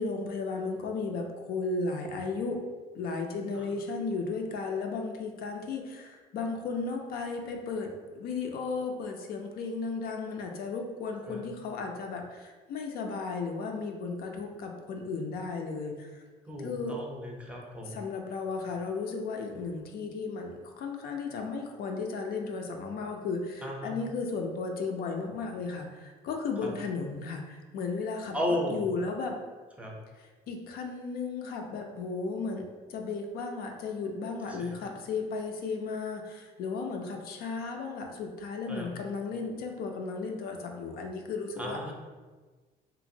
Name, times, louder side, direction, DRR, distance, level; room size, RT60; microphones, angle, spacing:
voice 1, 0.0-2.6 2.9-16.2 16.6-16.9 17.9-29.4 30.2-32.6 32.9-41.8, left 4 dB, 65° left, 3 dB, 0.4 m, -35 dB
voice 2, 16.5-18.0 23.6-23.9 26.6-26.7 28.3-28.9 29.8-29.9 34.4-34.7 38.7-38.9 41.6-41.9, left 1 dB, 10° right, -2 dB, 0.5 m, -34 dB
2.9 x 2.5 x 2.6 m, 1.4 s
cardioid pair, 110°, 17 cm